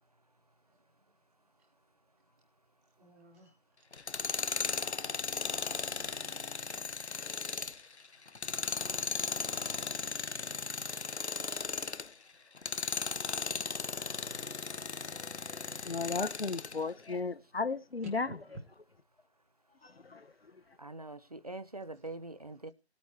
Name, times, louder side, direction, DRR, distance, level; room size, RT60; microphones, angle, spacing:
voice 1, 3.0-3.5 4.4-5.6 7.8-8.1 12.3-12.4 18.2-18.6, right 2 dB, ahead, 1.6 m, -58 dB
Tools, 3.9-12.1 12.6-16.8, left 5 dB, 80° left, 1.0 m, -36 dB
voice 2, 15.1-18.3 19.8-20.6, left 4 dB, 60° left, 1.5 m, -36 dB
voice 3, 20.8-22.7, right 2 dB, 35° right, 0.8 m, -43 dB
19.5 x 8.5 x 4.6 m
figure-of-eight pair, 170°, 33 cm